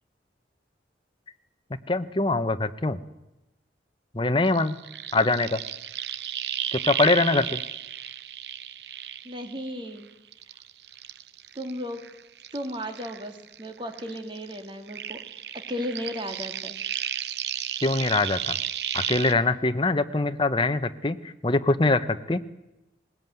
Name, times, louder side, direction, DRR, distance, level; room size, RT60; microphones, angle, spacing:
voice 1, 1.9-3.0 4.1-4.8 5.1-5.6 6.7-7.6 17.8-18.6 18.9-22.4, left 2 dB, 30° left, 10 dB, 0.9 m, -23 dB
sound 1, 4.4-10.0 10.3-13.7 13.9-19.3, right 10 dB, 75° right, 0.7 m, -33 dB
voice 2, 9.2-10.1 11.6-12.0 12.5-15.2 15.5-16.7, equal, 25° right, 6 dB, 2.2 m, -35 dB
19.5 x 18.5 x 9.3 m, 0.95 s
head